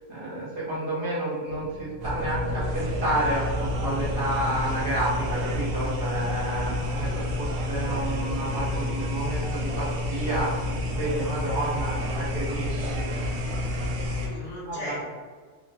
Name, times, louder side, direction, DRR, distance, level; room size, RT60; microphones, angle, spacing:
voice 1, 0.1-13.1 14.7-14.9, right 1 dB, 50° right, -7 dB, 0.9 m, -30 dB
sound 1, 1.5-9.7, left 2 dB, 20° right, 1.1 m, -45 dB
sound 2, 2.0-14.3, left 1 dB, 75° right, 0.9 m, -29 dB
voice 2, 13.9-15.1, left 1 dB, 55° left, -7 dB, 0.9 m, -39 dB
3.0 x 2.1 x 2.8 m, 1.5 s
omnidirectional pair, 1.3 m